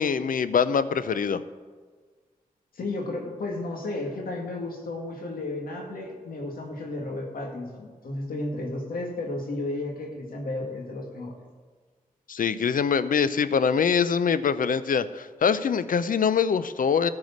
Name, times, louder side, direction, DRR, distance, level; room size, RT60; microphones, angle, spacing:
voice 1, 0.0-1.4 12.3-17.1, left 6 dB, 70° left, 14 dB, 0.6 m, -24 dB
voice 2, 2.7-11.3, left 2 dB, 85° left, 1 dB, 2.0 m, -33 dB
13.5 x 4.9 x 8.4 m, 1.5 s
cardioid pair, 45°, 15 cm